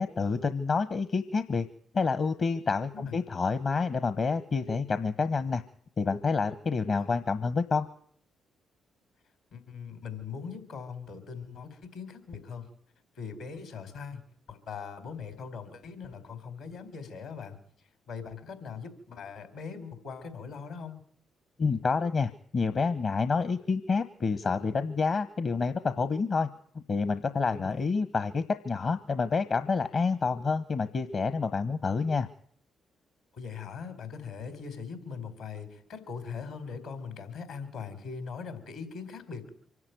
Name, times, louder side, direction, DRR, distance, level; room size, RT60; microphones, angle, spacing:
voice 1, 0.0-1.7 1.9-5.6 6.0-7.9 21.6-26.5 26.7-32.3, left 4 dB, 55° left, 12 dB, 1.1 m, -28 dB
voice 2, 9.5-12.7 13.2-14.2 14.5-17.6 18.1-21.0 27.5-27.9 33.3-39.5, left 6 dB, 80° left, 8 dB, 3.9 m, -41 dB
25.0 x 11.0 x 9.4 m, 0.62 s
hypercardioid pair, 45°, 0 cm